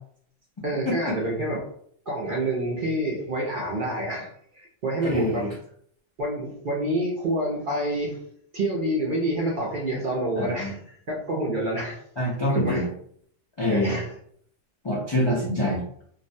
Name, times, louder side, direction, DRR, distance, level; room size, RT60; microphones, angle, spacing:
voice 1, 0.6-1.7 2.1-5.5 6.2-8.2 8.5-12.0 12.5-12.9 13.7-14.1, right 1 dB, 55° right, -3 dB, 0.6 m, -28 dB
voice 2, 5.1-5.5 10.4-10.7 12.2-12.9 13.6-13.9 14.8-15.8, left 1 dB, 45° left, -6 dB, 0.3 m, -25 dB
2.4 x 2.1 x 2.6 m, 0.64 s
omnidirectional pair, 1.3 m